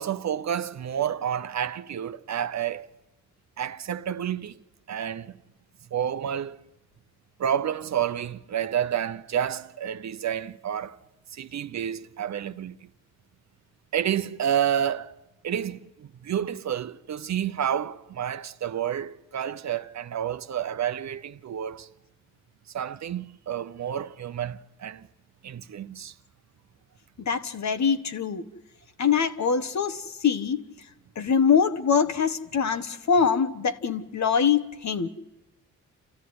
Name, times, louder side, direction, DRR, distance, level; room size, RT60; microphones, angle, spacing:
voice 1, 0.0-2.9 3.6-4.6 4.9-5.3 5.9-6.6 7.4-11.0 11.3-12.7 13.9-15.1 15.4-21.9 22.7-25.1 25.4-26.1, right 9 dB, 50° right, 0.9 m, -29 dB
voice 2, 27.2-28.4 29.0-30.6 31.2-35.1, left 6 dB, 50° left, 1.4 m, -24 dB
28.5 x 14.0 x 9.7 m
supercardioid pair, 55°, 35 cm